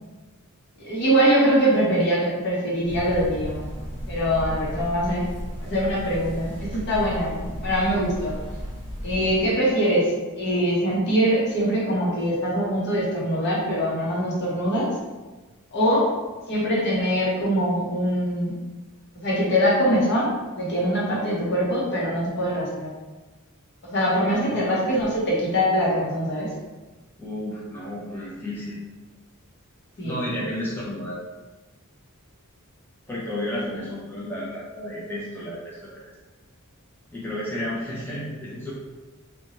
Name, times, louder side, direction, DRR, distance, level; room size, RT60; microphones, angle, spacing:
voice 1, 0.8-3.7 4.1-5.2 5.6-8.4 9.0-10.0 10.4-14.9 15.7-16.1 16.5-18.5 19.2-22.9 23.8-26.5 30.0-30.3, equal, 55° left, -5 dB, 0.8 m, -23 dB
sound 1, 2.8-9.5, equal, 25° left, 1.0 m, -34 dB
voice 2, 24.1-24.6 27.2-28.8 30.0-31.2 33.1-36.0 37.1-38.7, left 1 dB, 10° left, -7 dB, 0.5 m, -32 dB
2.7 x 2.2 x 2.8 m, 1.2 s
head